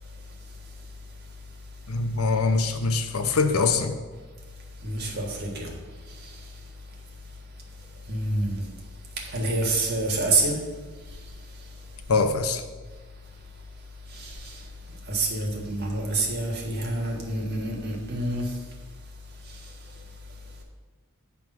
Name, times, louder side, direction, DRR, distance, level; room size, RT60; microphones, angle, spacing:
voice 1, 1.9-4.0 12.1-12.6, left 4 dB, 70° left, 7 dB, 0.7 m, -23 dB
voice 2, 4.8-5.7 8.1-8.6 9.3-10.6 14.1-14.6 15.1-18.5, right 2 dB, 45° right, -1 dB, 1.6 m, -27 dB
9.3 x 3.6 x 5.9 m, 1.4 s
head